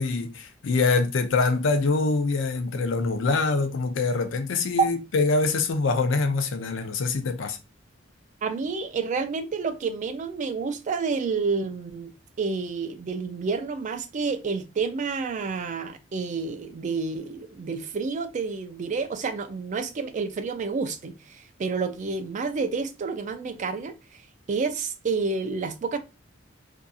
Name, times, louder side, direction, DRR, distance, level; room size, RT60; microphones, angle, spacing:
voice 1, 0.0-7.6, left 3 dB, 75° left, 0.5 m, -24 dB
voice 2, 8.4-12.1 12.4-23.9 24.5-26.0, right 4 dB, 40° right, 0.3 m, -29 dB
2.6 x 2.5 x 2.3 m
head